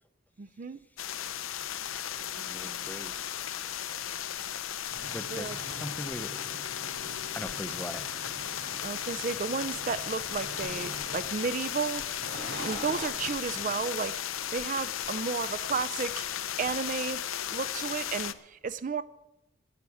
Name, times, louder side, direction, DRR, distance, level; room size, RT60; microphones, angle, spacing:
voice 1, 0.4-0.8 2.4-2.8 5.3-5.6 8.8-14.2 14.5-16.3 16.6-17.2 17.5-19.0, right 5 dB, 40° right, 0.4 m, -33 dB
sound 1, 1.0-18.3, left 10 dB, 85° left, 0.7 m, -35 dB
voice 2, 2.1-3.4 5.1-6.4 7.3-8.1, equal, 10° left, 0.6 m, -41 dB
sound 2, 4.9-13.8, right 1 dB, 60° right, 5.0 m, -45 dB
11.0 x 10.5 x 8.4 m
head